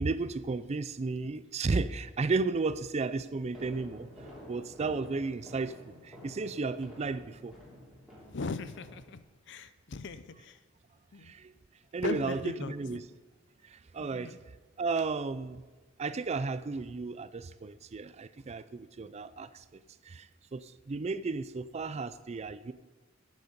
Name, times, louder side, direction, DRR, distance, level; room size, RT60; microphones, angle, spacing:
voice 1, 0.0-4.1 4.5-7.5 11.2-11.5 11.9-13.0 13.6-14.3 14.8-15.6 16.0-22.7, right 4 dB, 35° right, 15 dB, 0.4 m, -34 dB
sound 1, 3.4-9.0, left 1 dB, 5° right, 3.4 m, -50 dB
voice 2, 8.3-9.2 9.5-10.6 11.1-11.3 12.0-12.7 14.0-14.4, left 4 dB, 60° left, 13 dB, 0.6 m, -38 dB
10.5 x 8.3 x 5.3 m, 1.3 s
head